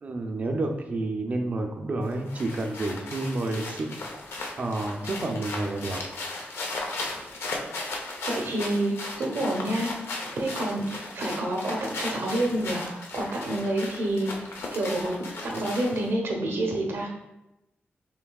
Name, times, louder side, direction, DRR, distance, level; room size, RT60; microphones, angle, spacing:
voice 1, 0.0-4.0 4.6-6.0, right 2 dB, 35° right, 4 dB, 0.5 m, -30 dB
sound 1, 2.0-16.1, left 2 dB, 85° left, 0.7 m, -36 dB
voice 2, 8.3-14.5 14.7-15.2 15.4-17.1, right 1 dB, 75° right, 0 dB, 0.9 m, -28 dB
5.9 x 3.3 x 2.3 m, 0.92 s
wide cardioid pair, 175°, 4 cm